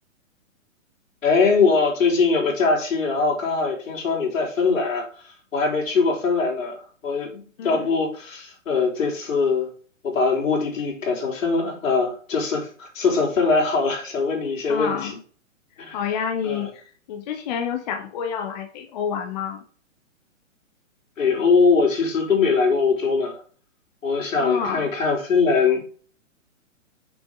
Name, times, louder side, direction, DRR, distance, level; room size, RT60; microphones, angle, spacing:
voice 1, 1.2-9.7 10.0-15.1 15.8-16.0 16.4-16.7 21.2-23.4 24.0-25.8, left 4 dB, 75° left, -1 dB, 3.7 m, -22 dB
voice 2, 14.7-15.2 15.9-19.6 24.4-24.9, left 7 dB, 30° left, 4 dB, 0.8 m, -28 dB
6.3 x 5.3 x 3.6 m, 0.44 s
hypercardioid pair, 145°, 40 cm